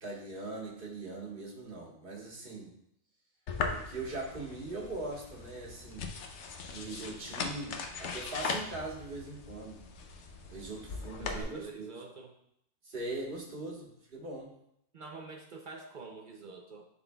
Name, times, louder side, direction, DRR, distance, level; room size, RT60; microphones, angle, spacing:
voice 1, 0.0-2.7 3.7-6.1 6.7-9.8 10.5-11.9 12.8-14.5, right 2 dB, 40° right, -2 dB, 1.4 m, -41 dB
sound 1, 3.5-11.4, left 4 dB, 60° left, 0.9 m, -39 dB
voice 2, 11.2-12.3 14.9-16.9, right 4 dB, 55° right, 2 dB, 0.5 m, -46 dB
10.5 x 4.0 x 2.3 m, 0.74 s
omnidirectional pair, 1.4 m